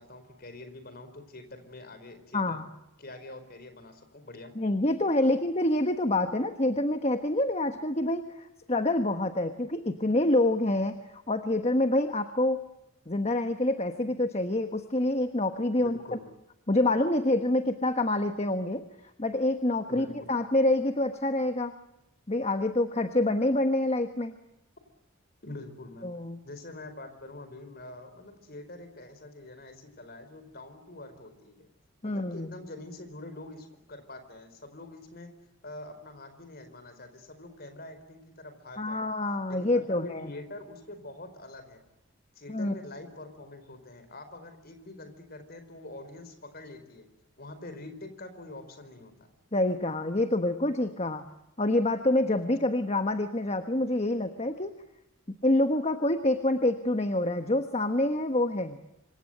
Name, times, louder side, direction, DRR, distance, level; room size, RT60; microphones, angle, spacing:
voice 1, 0.0-2.6 3.0-4.5 15.8-16.2 19.9-20.3 25.4-26.1 26.4-31.7 32.0-35.3 35.6-39.1 39.5-41.8 42.3-47.1 47.4-49.3, left 2 dB, 45° left, 9 dB, 4.6 m, -45 dB
voice 2, 2.3-2.6 4.6-11.0 11.3-12.6 13.1-16.0 16.7-18.8 19.2-21.7 22.3-24.3 26.0-26.4 32.0-32.5 38.8-40.3 42.5-42.7 49.5-51.2 51.6-54.7 55.4-58.8, left 1 dB, 30° left, 7 dB, 1.3 m, -27 dB
26.5 x 25.5 x 7.9 m, 0.88 s
head